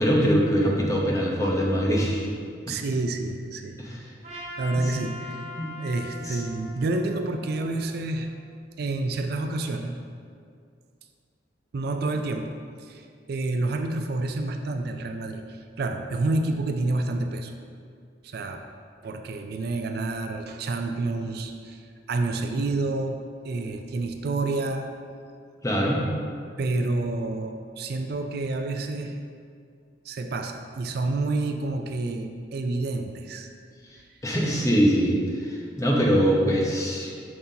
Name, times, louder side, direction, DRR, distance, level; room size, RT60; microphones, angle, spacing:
voice 1, 0.0-2.3 3.8-4.0 4.7-4.9 5.6-5.7 6.2-6.4 25.6-26.0 34.2-37.1, equal, 15° left, -3 dB, 0.8 m, -23 dB
voice 2, 2.7-3.8 4.3-5.5 5.8-8.3 8.8-10.0 11.7-17.6 18.2-18.7 19.0-24.9 26.6-29.2 30.1-33.5, right 2 dB, 55° right, 6 dB, 0.4 m, -29 dB
Trumpet, 4.2-8.5, left 1 dB, 40° right, 1.4 m, -42 dB
7.5 x 5.8 x 2.8 m, 2.3 s
head